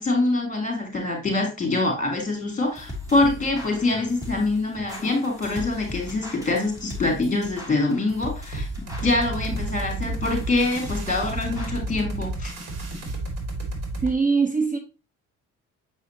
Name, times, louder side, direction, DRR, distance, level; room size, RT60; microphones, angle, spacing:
voice 1, 0.0-8.7 9.0-12.5, left 2 dB, 25° left, 2 dB, 3.5 m, -25 dB
sound 1, 2.6-11.7, left 2 dB, 10° right, 2.6 m, -38 dB
sound 2, 8.5-14.1, right 2 dB, 60° right, 2.2 m, -31 dB
voice 2, 14.0-14.8, right 4 dB, 25° right, 5 dB, 0.9 m, -22 dB
7.7 x 4.9 x 2.8 m, 0.30 s
cardioid pair, 90°, 30 cm